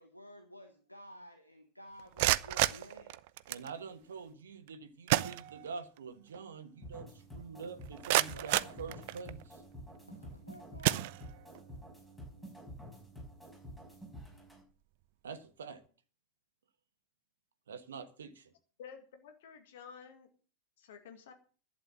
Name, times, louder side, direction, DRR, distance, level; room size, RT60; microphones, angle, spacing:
voice 1, 0.0-3.2 8.3-9.2 10.1-11.0, equal, 90° left, 1.5 m, -53 dB
sound 1, 2.0-3.7 4.7-4.8 5.1-6.0 6.3-6.4 7.0-7.1 7.6-9.5 10.1-10.4 10.8-11.6, right 17 dB, 50° right, 0.5 m, -32 dB
voice 2, 3.5-9.6 15.2-15.8 17.7-18.5, right 5 dB, 65° right, 1.2 m, -46 dB
sound 2, 6.8-14.6, equal, 5° left, 5.6 m, -49 dB
voice 3, 18.8-20.3 20.8-21.3, left 7 dB, 55° left, 2.0 m, -51 dB
11.5 x 8.8 x 7.4 m
figure-of-eight pair, 90°, 0 cm